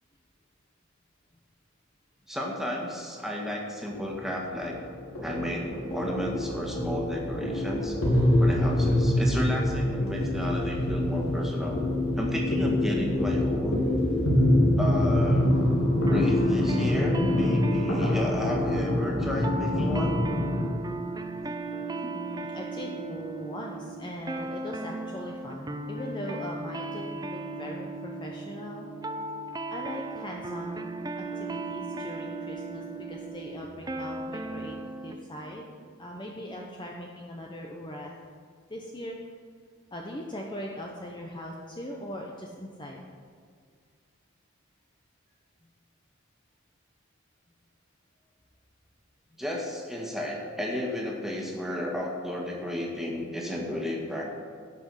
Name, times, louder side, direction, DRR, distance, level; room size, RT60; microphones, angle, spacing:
voice 1, 2.3-4.8 5.2-8.0 8.4-11.8 12.2-13.8 14.8-15.5 16.0-20.2 49.4-54.2, left 1 dB, ahead, -2 dB, 1.9 m, -33 dB
sound 1, 3.9-20.7, left 1 dB, 80° left, 2.9 m, -25 dB
sound 2, 16.1-35.2, right 2 dB, 20° right, 0.6 m, -37 dB
voice 2, 22.1-28.9 29.7-30.9 31.2-35.7 36.0-38.1 38.7-39.2 39.9-43.0 49.3-49.4, left 1 dB, 20° left, -1 dB, 0.9 m, -40 dB
16.5 x 6.1 x 6.4 m, 2.1 s
head